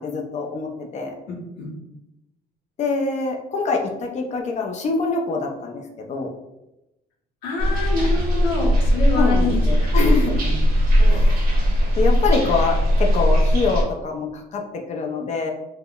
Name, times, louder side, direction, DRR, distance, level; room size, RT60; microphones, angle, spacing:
voice 1, 0.0-1.1 2.8-6.3 9.1-10.4 11.1-11.5 12.0-15.5, left 4 dB, 45° left, 2 dB, 0.5 m, -25 dB
voice 2, 1.3-1.7 7.4-10.0 10.4-10.6 11.0-11.3, left 3 dB, 85° left, -1 dB, 0.8 m, -27 dB
sound 1, 7.6-13.8, equal, 60° right, 0.8 m, -18 dB
3.5 x 2.1 x 2.3 m, 0.93 s
cardioid pair, 110°, 17 cm